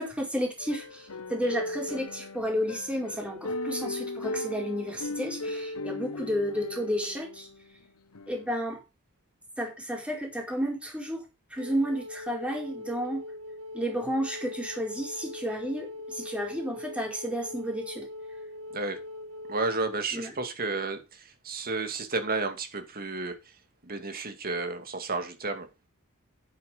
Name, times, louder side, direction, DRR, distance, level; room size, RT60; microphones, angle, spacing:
voice 1, 0.0-7.5 8.3-8.8 9.6-11.2 11.5-13.2 13.7-18.1 20.1-20.3, equal, 5° right, 4.6 m, -32 dB
sound 1, 0.6-7.6 8.1-8.5, left 2 dB, 85° left, 1.0 m, -37 dB
Wind instrument woodwind instrument, 11.6-20.0, left 2 dB, 90° right, 1.9 m, -41 dB
voice 2, 19.5-23.4 23.8-25.7, right 3 dB, 45° right, 2.2 m, -32 dB
10.5 x 8.3 x 5.2 m
head